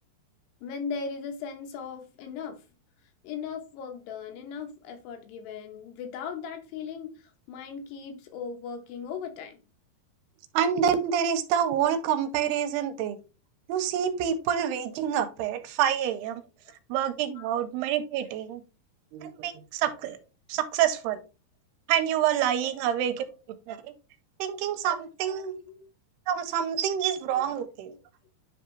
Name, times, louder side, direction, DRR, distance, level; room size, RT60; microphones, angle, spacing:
voice 1, 0.6-2.6 3.2-7.1 7.5-9.6 17.4-17.5 22.6-22.7 25.7-25.8 27.3-27.4, left 6 dB, 85° left, 5 dB, 3.1 m, -38 dB
voice 2, 10.5-13.2 13.7-16.4 16.9-18.6 19.1-20.2 20.5-21.2 21.9-23.3 23.7-23.9 24.4-25.6 26.3-27.9, right 9 dB, 85° right, 9 dB, 2.6 m, -27 dB
10.0 x 3.4 x 3.2 m, 0.32 s
omnidirectional pair, 4.8 m